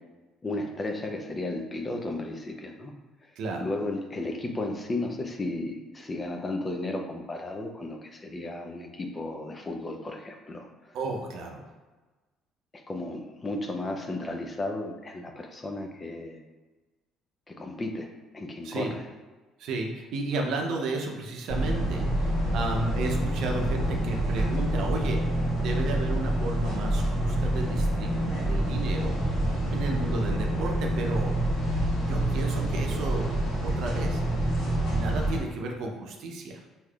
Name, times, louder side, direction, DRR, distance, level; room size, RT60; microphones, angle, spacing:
voice 1, 0.4-2.9 3.6-10.9 12.7-16.4 17.5-18.1 18.3-19.0, left 2 dB, 30° left, 3 dB, 0.6 m, -34 dB
voice 2, 3.4-3.7 10.9-11.6 18.6-18.9 19.6-25.2 25.6-29.2 29.7-33.3 33.6-34.2 34.9-36.6, right 2 dB, 70° right, 1 dB, 0.6 m, -33 dB
sound 1, 21.5-35.4, right 1 dB, 70° left, 1.4 m, -27 dB
4.7 x 2.8 x 2.3 m, 1.2 s
supercardioid pair, 65°, 0 cm